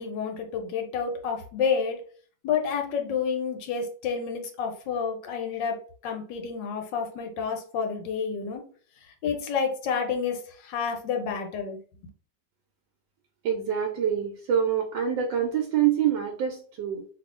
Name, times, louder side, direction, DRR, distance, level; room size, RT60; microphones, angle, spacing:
voice 1, 0.0-2.0 2.4-8.6 9.2-11.8, left 6 dB, 80° left, 4 dB, 1.4 m, -29 dB
voice 2, 13.4-17.0, right 9 dB, 85° right, 2 dB, 1.3 m, -26 dB
2.9 x 2.7 x 3.6 m, 0.43 s
omnidirectional pair, 1.9 m